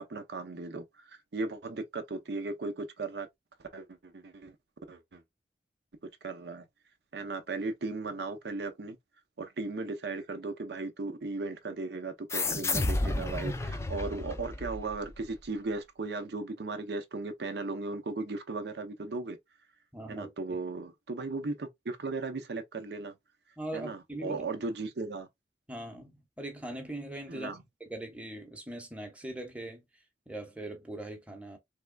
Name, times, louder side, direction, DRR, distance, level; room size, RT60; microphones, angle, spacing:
voice 1, 0.0-3.3 3.6-4.6 4.9-5.2 6.0-6.6 7.1-9.0 9.4-19.4 20.1-23.1 23.7-25.3 27.3-27.6, right 3 dB, 65° right, 0.6 m, -37 dB
sound 1, 12.3-15.3, left 2 dB, 15° left, 0.4 m, -32 dB
voice 2, 19.9-20.6 23.6-24.4 25.7-29.8 30.3-31.6, right 1 dB, 10° right, 1.0 m, -41 dB
3.6 x 3.3 x 2.2 m
head